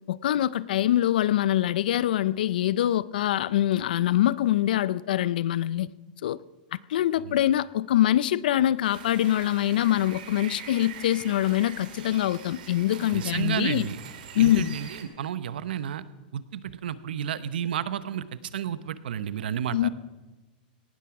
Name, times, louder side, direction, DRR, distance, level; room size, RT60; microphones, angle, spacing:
voice 1, 0.1-5.9 6.2-6.4 6.7-13.9 14.3-14.7 19.7-19.9, left 12 dB, 65° left, 0.5 m, -24 dB
sound 1, 8.8-15.0, right 8 dB, 60° right, 2.2 m, -44 dB
voice 2, 13.1-14.0 14.4-14.9 15.2-16.0 16.3-19.8, right 9 dB, 85° right, 0.9 m, -31 dB
18.0 x 13.0 x 4.8 m
supercardioid pair, 180°, 5 cm